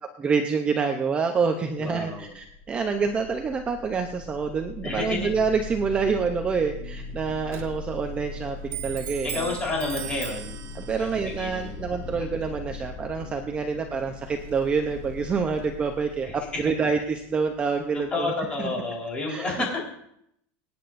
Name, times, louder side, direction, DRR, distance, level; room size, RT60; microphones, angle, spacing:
voice 1, 0.0-9.5 10.7-18.3 18.6-18.8 19.3-19.8, right 5 dB, 20° right, 5 dB, 0.7 m, -27 dB
voice 2, 1.8-2.3 4.8-5.3 9.2-10.6 11.0-12.1 16.2-16.4 18.1-19.8, left 3 dB, 20° left, -2 dB, 4.0 m, -30 dB
sound 1, 2.4-19.3, left 4 dB, 50° left, 3.8 m, -41 dB
Clock, 6.9-16.2, right 11 dB, 40° right, 1.3 m, -42 dB
24.5 x 9.8 x 2.6 m, 0.73 s
supercardioid pair, 160°, 6 cm